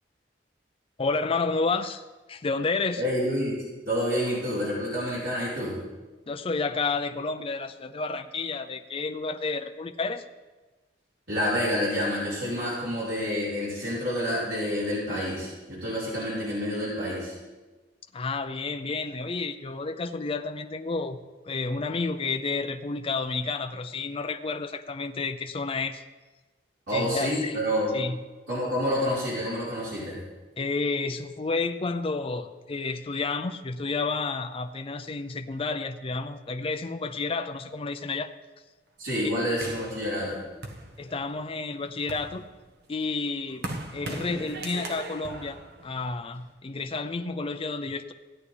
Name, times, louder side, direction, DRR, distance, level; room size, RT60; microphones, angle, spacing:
voice 1, 1.0-2.0 2.3-3.0 6.3-10.2 18.1-21.2 21.4-26.0 26.9-27.6 27.9-28.2 30.6-38.3 39.2-39.3 41.0-42.5 42.9-43.7 43.9-45.6 45.8-48.1, left 3 dB, 30° left, 7 dB, 0.5 m, -30 dB
voice 2, 3.0-3.5 3.9-5.7 11.3-17.3 26.9-27.9 28.5-30.2 39.0-40.4, equal, 85° right, -9 dB, 4.3 m, -28 dB
sound 1, 39.6-41.4 41.9-46.5, right 2 dB, 60° right, 1.2 m, -39 dB
17.0 x 9.7 x 3.4 m, 1.2 s
head